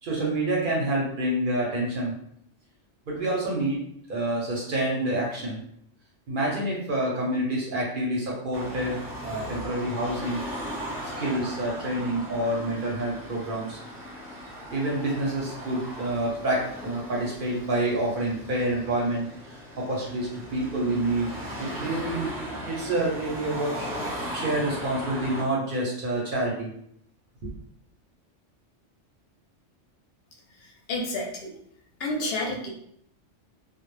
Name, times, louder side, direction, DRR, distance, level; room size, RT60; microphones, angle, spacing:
voice 1, 0.0-2.1 3.1-3.8 4.1-5.6 6.3-9.0 9.2-10.4 11.0-13.8 14.7-22.3 22.6-23.9 24.3-26.7 27.4-27.5, right 1 dB, 55° right, -3 dB, 0.7 m, -28 dB
Car passing by / Traffic noise roadway noise / Engine, 8.5-25.4, equal, 15° left, 0.6 m, -37 dB
voice 2, 30.9-31.5 32.0-32.7, left 2 dB, 65° left, 0 dB, 0.7 m, -29 dB
2.0 x 2.0 x 3.0 m, 0.70 s
omnidirectional pair, 1.2 m